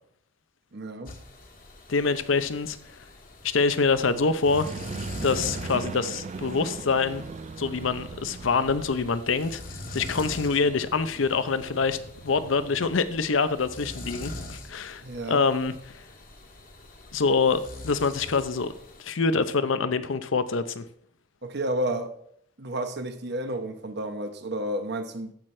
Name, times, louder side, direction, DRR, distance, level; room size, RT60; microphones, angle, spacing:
voice 1, 0.7-1.1 15.0-15.5 21.4-22.1 22.6-25.3, right 1 dB, 60° right, 1.0 m, -31 dB
sound 1, 1.1-19.0, left 2 dB, 50° left, 1.4 m, -43 dB
voice 2, 1.9-2.8 3.4-4.7 5.2-7.2 7.6-9.6 9.9-12.0 12.2-15.0 15.3-15.7 17.1-18.7 19.0-20.8, left 4 dB, 85° left, 0.7 m, -25 dB
sound 2, 4.4-13.0, right 4 dB, 35° right, 0.3 m, -40 dB
14.0 x 6.0 x 3.3 m
head